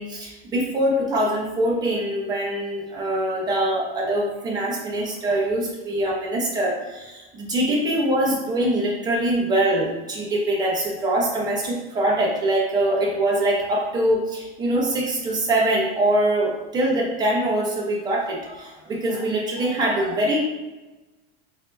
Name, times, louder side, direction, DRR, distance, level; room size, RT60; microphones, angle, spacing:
voice 1, 0.0-20.4, right 1 dB, 15° right, -4 dB, 0.8 m, -23 dB
4.2 x 2.7 x 3.9 m, 1.1 s
supercardioid pair, 170°, 29 cm